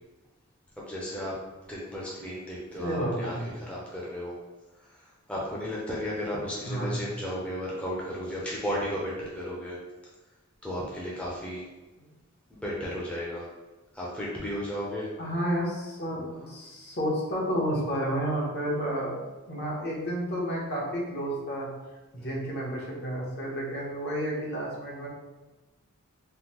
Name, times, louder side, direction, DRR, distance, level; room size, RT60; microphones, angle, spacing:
voice 1, 0.8-1.3 1.7-4.3 4.8-9.8 10.6-11.6 12.5-13.5 13.9-15.1 16.3-16.5 22.2-22.3, equal, 5° left, -6 dB, 0.5 m, -34 dB
voice 2, 2.8-3.4 6.6-7.0 15.2-19.2 19.5-21.7 22.1-25.1, equal, 50° left, -3 dB, 0.8 m, -31 dB
3.5 x 2.1 x 2.9 m, 1.1 s
head